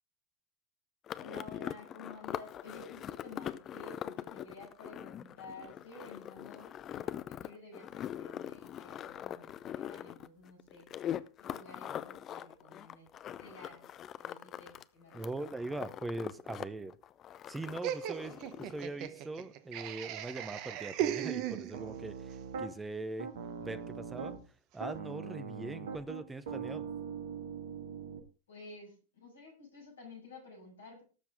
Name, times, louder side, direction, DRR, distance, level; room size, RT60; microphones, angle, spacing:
sound 1, 1.1-14.8 15.1-16.7 16.9-18.9, left 10 dB, 30° left, 0.6 m, -42 dB
voice 1, 1.2-10.9 11.4-13.1 13.4-13.8 14.2-15.6 23.5-23.6 28.5-31.0, left 2 dB, 65° left, 0 dB, 7.2 m, -52 dB
voice 2, 15.1-17.0 17.5-23.3 23.6-24.3 24.7-26.9, right 2 dB, 10° right, 13 dB, 1.0 m, -41 dB
Laughter, 17.8-22.1, right 11 dB, 40° right, 1.0 m, -37 dB
Piano, 21.7-22.7 23.2-24.4 24.8-28.2, right 6 dB, 60° right, 1.8 m, -41 dB
18.5 x 7.3 x 3.7 m, 0.34 s
figure-of-eight pair, 90°, 0 cm